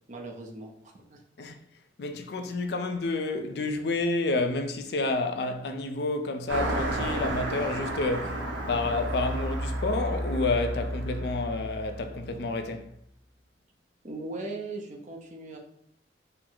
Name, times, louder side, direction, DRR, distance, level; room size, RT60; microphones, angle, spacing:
voice 1, 0.1-1.2 14.0-15.6, right 2 dB, 40° right, 0.6 m, -39 dB
voice 2, 2.0-12.9, left 2 dB, 60° left, 0.4 m, -29 dB
Car passing by, 6.5-12.3, right 1 dB, 75° right, 0.8 m, -32 dB
4.4 x 2.0 x 3.8 m
head